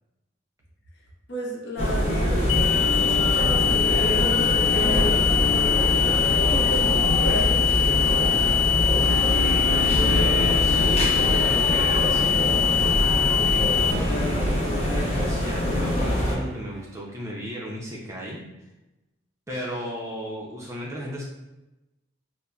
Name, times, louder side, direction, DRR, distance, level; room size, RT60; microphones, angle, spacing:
voice 1, 1.3-5.3 6.5-8.4, equal, 60° left, -2 dB, 0.8 m, -32 dB
sound 1, 1.8-16.4, equal, 35° left, 0.6 m, -24 dB
sound 2, 2.5-13.9, left 9 dB, 80° left, 0.3 m, -23 dB
sound 3, 9.0-16.8, right 1 dB, 75° right, 0.4 m, -37 dB
voice 2, 9.9-11.1 11.4-18.4 19.5-21.2, right 1 dB, 15° right, -4 dB, 0.4 m, -35 dB
5.2 x 2.0 x 2.3 m, 0.99 s
head